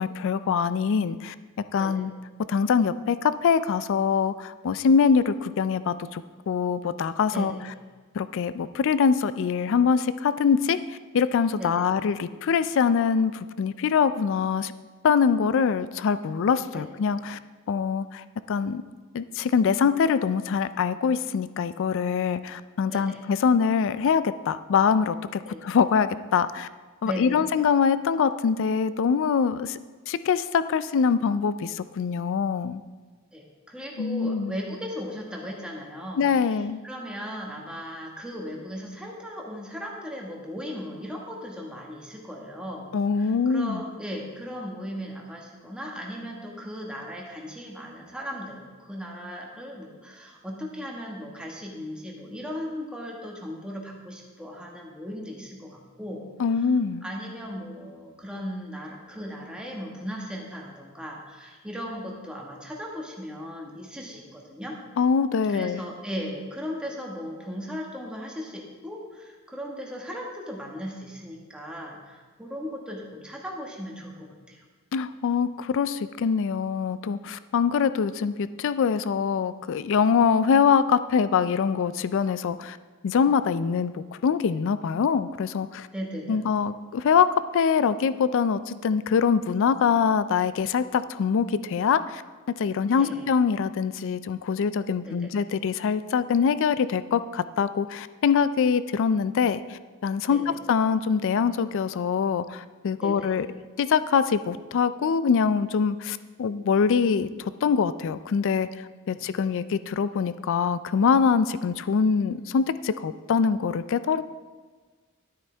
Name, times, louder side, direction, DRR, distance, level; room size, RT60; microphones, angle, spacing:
voice 1, 0.0-1.3 1.7-2.1 2.5-7.5 8.1-14.7 15.0-17.4 17.7-18.8 19.1-26.7 27.0-29.8 30.1-32.8 34.0-34.5 36.2-36.8 42.9-43.8 56.4-57.0 65.0-65.8 74.9-82.8 83.0-85.9 86.3-87.3 87.5-92.2 92.6-100.4 100.7-103.5 103.8-114.2, left 6 dB, 60° left, 14 dB, 0.3 m, -24 dB
voice 2, 7.3-7.6 11.6-11.8 16.7-16.9 22.9-23.2 25.5-25.7 27.0-27.4 33.3-56.7 57.0-64.8 65.5-74.6 85.9-86.4 92.9-93.3 95.0-95.3 100.2-100.4 103.0-103.3 109.1-109.2, equal, 5° right, -2 dB, 1.5 m, -37 dB
12.5 x 8.9 x 3.4 m, 1.5 s
head